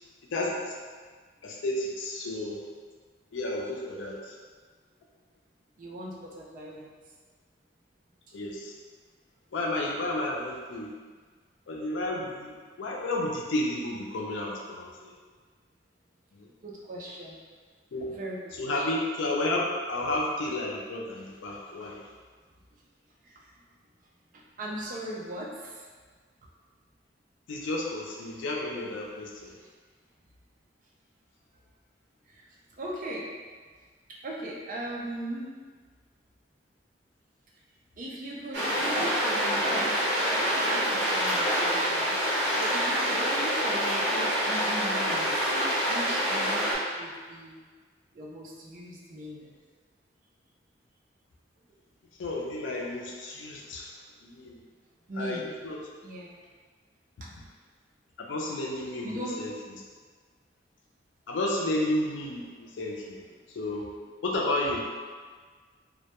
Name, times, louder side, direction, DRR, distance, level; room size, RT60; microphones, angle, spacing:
voice 1, 0.3-0.7 1.4-2.6 3.3-4.2 8.3-8.7 9.5-10.9 11.7-15.1 16.4-16.5 17.9-18.1 18.6-22.0 27.5-29.5 52.2-53.9 54.2-54.6 55.2-55.8 58.2-59.5 61.3-63.2 63.5-63.8 64.2-64.8, left 1 dB, 90° left, -2 dB, 0.4 m, -31 dB
voice 2, 5.8-7.0 16.6-17.4 18.1-18.9 21.8-21.9 23.2-23.5 24.3-25.9 32.3-32.5 32.7-33.3 34.2-35.5 38.0-42.1 42.6-45.5 45.9-46.7 46.9-47.6 48.1-49.6 55.1-55.5 56.0-56.3 57.2-57.3 59.0-59.4, right 1 dB, 45° right, -3 dB, 0.4 m, -39 dB
sound 1, 38.5-46.8, equal, 65° right, 0.8 m, -26 dB
2.1 x 2.1 x 2.8 m, 1.5 s
head